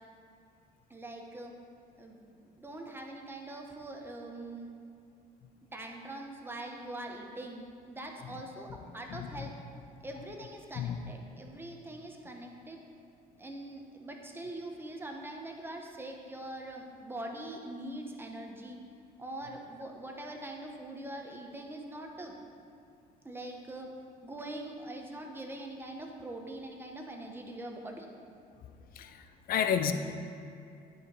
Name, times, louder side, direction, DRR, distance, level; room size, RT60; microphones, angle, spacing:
voice 1, 0.9-1.5 2.0-4.7 5.7-9.5 10.0-12.8 13.4-18.8 19.2-22.4 23.2-23.9 24.2-28.1, right 1 dB, 15° right, 1 dB, 1.0 m, -43 dB
voice 2, 29.5-29.9, left 8 dB, 60° left, 9 dB, 0.6 m, -29 dB
10.0 x 4.9 x 5.3 m, 2.6 s
cardioid pair, 110°, 17 cm